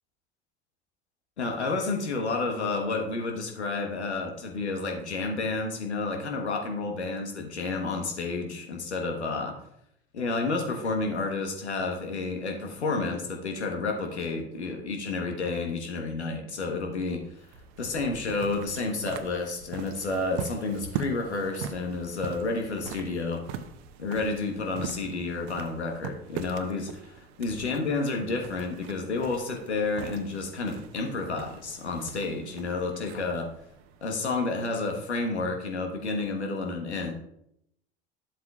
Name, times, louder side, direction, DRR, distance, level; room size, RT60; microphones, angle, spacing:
voice 1, 1.4-9.5 10.1-17.2 17.8-23.5 24.0-33.5 34.0-37.1, left 3 dB, 90° left, 2 dB, 1.2 m, -30 dB
sound 1, 17.1-34.7, right 7 dB, 65° right, 0.8 m, -42 dB
11.5 x 7.5 x 2.4 m, 0.77 s
hypercardioid pair, 70°, 33 cm